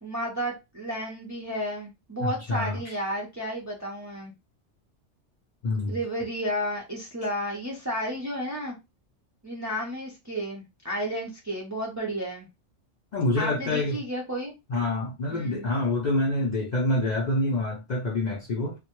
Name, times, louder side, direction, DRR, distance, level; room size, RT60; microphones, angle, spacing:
voice 1, 0.0-4.3 5.9-8.8 9.4-12.5 13.3-14.5 15.3-15.7, equal, 30° right, 0.3 m, -32 dB
voice 2, 2.2-2.8 5.6-6.0 13.1-14.0 14.7-18.7, left 2 dB, 60° left, 0.5 m, -26 dB
2.1 x 2.1 x 2.9 m
omnidirectional pair, 1.2 m